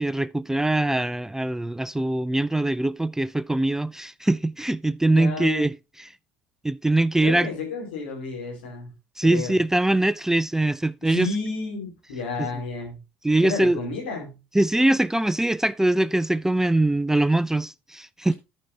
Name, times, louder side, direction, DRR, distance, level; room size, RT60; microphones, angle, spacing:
voice 1, 0.0-6.1 6.6-7.5 9.2-11.3 12.4-12.5 13.2-13.8 14.5-18.3, right 1 dB, 10° right, 0.4 m, -22 dB
voice 2, 5.1-5.6 7.2-8.9 9.2-9.6 11.0-13.0 13.4-14.3, left 3 dB, 85° left, 3.2 m, -31 dB
14.0 x 5.4 x 2.7 m
hypercardioid pair, 60°, 6 cm